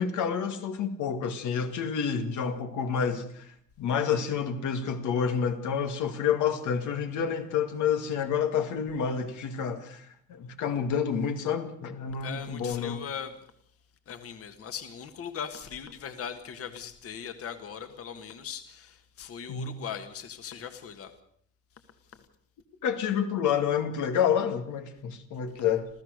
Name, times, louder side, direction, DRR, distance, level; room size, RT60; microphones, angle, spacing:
voice 1, 0.0-3.5 3.8-10.0 10.3-13.0 19.5-19.8 22.8-25.9, left 7 dB, 90° left, 2.2 m, -29 dB
voice 2, 12.2-13.4 14.1-21.1 22.1-22.3, left 7 dB, 50° left, 1.7 m, -39 dB
27.5 x 15.5 x 6.6 m
cardioid pair, 165°, 29 cm